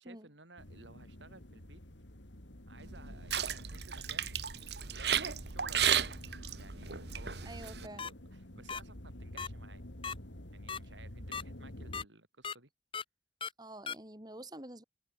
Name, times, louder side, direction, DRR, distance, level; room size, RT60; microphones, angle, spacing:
voice 1, 0.0-1.8 2.7-4.3 4.8-6.0 6.6-9.8 10.5-12.7, right 2 dB, 85° right, 5.8 m, -57 dB
sound 1, 0.6-12.0, left 1 dB, 85° left, 3.6 m, -50 dB
sound 2, 2.8-7.9, right 8 dB, 65° right, 1.7 m, -34 dB
voice 2, 7.4-8.1 13.6-14.8, right 1 dB, 20° right, 3.9 m, -47 dB
sound 3, 8.0-8.1 8.7-8.8 9.4-9.5 10.0-10.1 10.7-10.8 11.3-11.4 11.9-12.0 12.4-12.5 12.9-13.0 13.4-13.5 13.9-14.0, left 6 dB, 30° left, 1.2 m, -37 dB
head